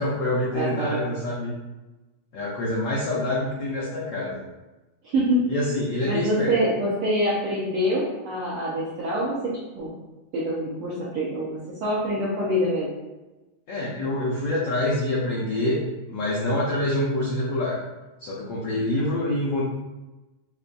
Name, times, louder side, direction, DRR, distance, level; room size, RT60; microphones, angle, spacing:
voice 1, 0.0-1.5 2.3-4.4 5.5-6.6 13.7-17.8 18.2-19.6, left 1 dB, 80° left, -6 dB, 1.3 m, -26 dB
voice 2, 0.5-1.1 5.0-5.4 6.0-9.9 10.3-12.9, equal, 75° right, -8 dB, 1.3 m, -25 dB
6.7 x 2.3 x 2.5 m, 1.1 s
omnidirectional pair, 3.5 m